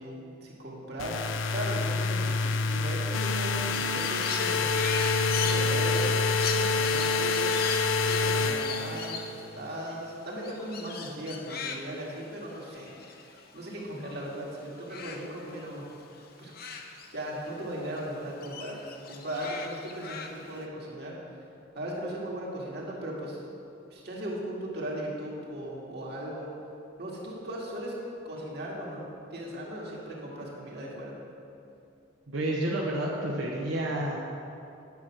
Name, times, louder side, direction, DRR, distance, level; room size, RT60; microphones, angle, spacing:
voice 1, 0.0-4.7 5.4-7.8 8.1-15.9 16.4-16.5 17.1-18.8 19.0-21.2 21.7-23.4 23.9-26.5 27.0-27.9 28.2-29.1 29.3-31.1, right 1 dB, 55° right, -4 dB, 2.2 m, -37 dB
sound 1, 1.0-9.3, left 4 dB, 90° left, 0.5 m, -27 dB
Crow, 3.7-14.4 14.6-17.6 17.9-20.6, left 5 dB, 50° left, 0.8 m, -40 dB
voice 2, 32.3-34.2, right 1 dB, 85° right, -3 dB, 1.1 m, -30 dB
9.5 x 7.4 x 6.1 m, 2.7 s
head